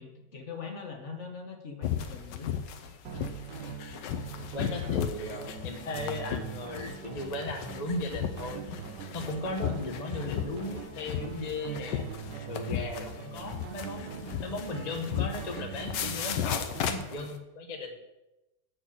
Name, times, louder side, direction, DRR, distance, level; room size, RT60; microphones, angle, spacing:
voice 1, 0.0-2.6, left 5 dB, 45° left, 3 dB, 1.3 m, -42 dB
sound 1, 1.8-17.4, left 9 dB, 80° left, 1.4 m, -35 dB
sound 2, 3.0-17.2, right 8 dB, 75° right, 1.3 m, -43 dB
voice 2, 4.5-8.6 9.1-12.0 12.5-17.9, left 2 dB, 30° left, 3 dB, 0.8 m, -36 dB
6.6 x 6.4 x 7.5 m, 0.98 s
omnidirectional pair, 1.9 m